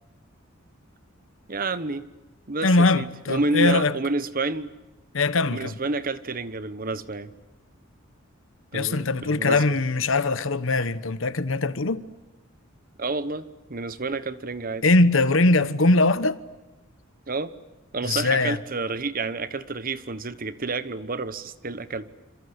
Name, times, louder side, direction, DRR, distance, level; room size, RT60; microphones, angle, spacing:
voice 1, 1.5-2.1 2.5-4.7 5.5-7.3 8.7-9.8 13.0-14.9 17.3-17.5 17.9-22.1, right 3 dB, 45° right, 1.1 m, -29 dB
voice 2, 2.6-3.9 5.1-5.8 8.7-12.0 14.8-16.4 18.0-18.6, left 2 dB, 70° left, 1.1 m, -21 dB
27.0 x 26.5 x 8.1 m
head